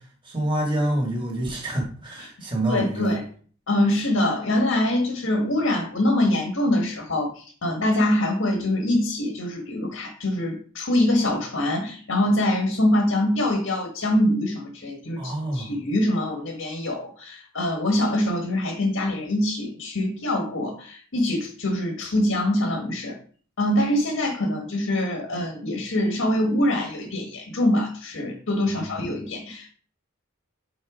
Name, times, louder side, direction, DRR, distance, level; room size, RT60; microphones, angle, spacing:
voice 1, 0.3-3.2 15.2-15.7 28.7-28.8, right 1 dB, 25° right, -1 dB, 1.9 m, -27 dB
voice 2, 2.7-3.3 3.7-23.2 23.6-29.7, left 1 dB, 80° left, 2 dB, 1.4 m, -24 dB
5.4 x 4.4 x 4.9 m, 0.44 s
head